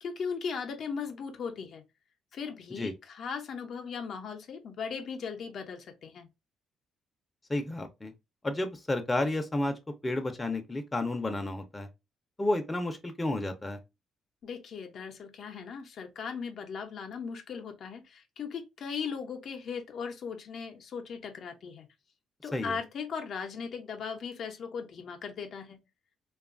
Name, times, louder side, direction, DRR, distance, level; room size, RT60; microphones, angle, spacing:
voice 1, 0.0-1.8 2.3-6.3 14.4-21.9 22.4-25.8, left 6 dB, 65° left, 0.5 m, -38 dB
voice 2, 7.5-8.1 8.4-9.7 10.0-11.9 12.4-13.8 22.5-22.8, left 2 dB, 20° left, 0.5 m, -31 dB
2.7 x 2.3 x 2.4 m
cardioid pair, 90°, 0 cm